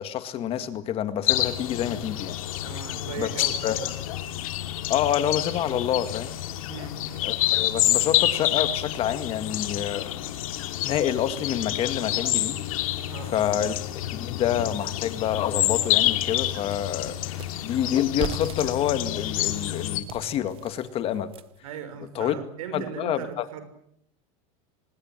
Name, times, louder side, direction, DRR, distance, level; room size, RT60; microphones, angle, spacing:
voice 1, 0.0-2.4 3.2-3.3 3.6-3.8 4.9-6.3 7.2-10.1 10.8-12.6 13.3-13.7 14.1-17.2 17.6-21.3 22.2-22.3 22.7-23.5, left 10 dB, 35° left, 11 dB, 2.0 m, -27 dB
sound 1, 1.3-20.0, left 14 dB, 85° left, 2.8 m, -28 dB
voice 2, 2.6-3.9 6.7-7.0 13.1-13.7 21.6-23.6, right 8 dB, 90° right, 10 dB, 6.4 m, -38 dB
sound 2, 14.6-14.7 15.2-15.3 15.6-21.7, right 12 dB, 30° right, 0.9 m, -41 dB
25.0 x 20.5 x 9.0 m, 0.73 s
supercardioid pair, 155°, 17 cm